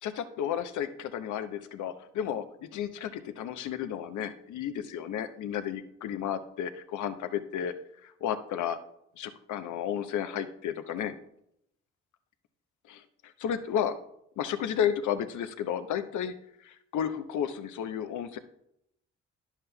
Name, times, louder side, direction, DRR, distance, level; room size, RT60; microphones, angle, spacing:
voice 1, 0.0-7.7 8.0-8.8 9.2-11.2 12.9-13.9 14.4-16.3 16.6-18.4, left 9 dB, 65° left, 10 dB, 0.8 m, -32 dB
10.5 x 7.3 x 2.3 m, 0.75 s
hypercardioid pair, 50°, 32 cm